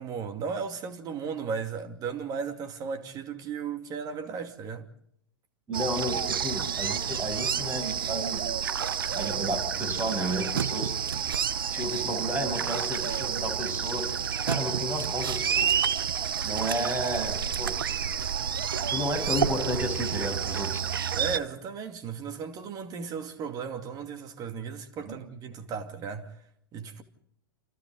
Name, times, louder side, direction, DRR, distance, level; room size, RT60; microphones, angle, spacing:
voice 1, 0.0-4.9 21.1-26.4 26.7-27.0, right 6 dB, 30° right, 2.5 m, -35 dB
voice 2, 5.7-8.4 9.1-10.9 11.6-14.2 14.4-15.7 16.4-17.7 18.9-20.9 25.1-25.2, equal, 15° right, 7.7 m, -32 dB
sound 1, 5.7-21.4, right 8 dB, 70° right, 0.9 m, -29 dB
29.0 x 27.0 x 4.0 m
figure-of-eight pair, 95°, 12 cm